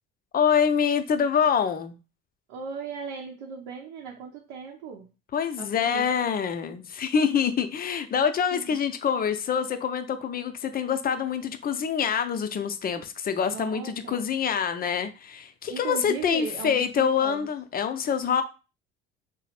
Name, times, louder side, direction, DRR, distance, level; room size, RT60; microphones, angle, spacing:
voice 1, 0.3-2.0 5.3-18.4, left 7 dB, 30° left, 9 dB, 0.5 m, -26 dB
voice 2, 2.5-5.1 5.6-6.2 8.5-8.8 13.5-14.3 15.7-17.5, right 6 dB, 75° right, -1 dB, 0.7 m, -37 dB
3.2 x 2.0 x 4.2 m, 0.31 s
hypercardioid pair, 65°, 32 cm